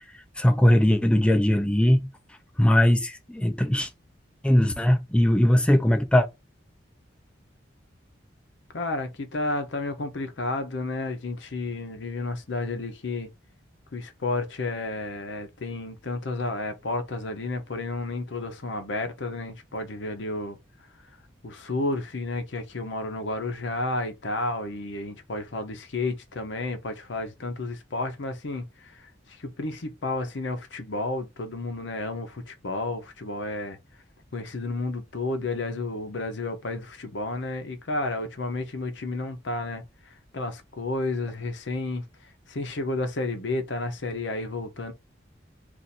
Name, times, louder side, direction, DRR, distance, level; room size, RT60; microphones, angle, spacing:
voice 1, 0.4-2.1 2.6-3.9 4.4-6.3, left 1 dB, 5° left, 0.5 m, -20 dB
voice 2, 8.7-13.3 13.9-20.6 21.4-29.1 29.4-33.8 34.3-39.8 40.3-42.0 42.5-44.9, left 2 dB, 70° left, 0.7 m, -31 dB
2.6 x 2.5 x 4.1 m
head